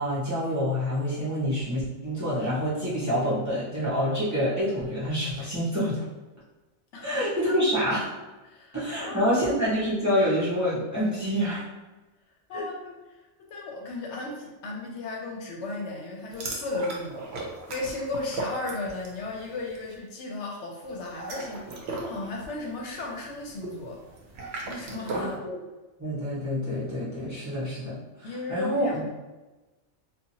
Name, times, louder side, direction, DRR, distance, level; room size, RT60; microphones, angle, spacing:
voice 1, 0.0-6.0 7.0-8.0 8.7-11.7 12.5-12.6 25.1-25.6 26.0-29.1, equal, 15° right, -10 dB, 0.7 m, -27 dB
voice 2, 6.9-7.5 8.4-9.4 12.5-13.2 13.5-24.0 24.6-25.3 28.2-29.1, left 2 dB, 75° left, -1 dB, 0.9 m, -35 dB
sound 1, 16.3-19.2 19.5-19.8 21.0-25.4, right 3 dB, 65° right, 0.8 m, -37 dB
2.7 x 2.3 x 2.7 m, 1.1 s
omnidirectional pair, 1.2 m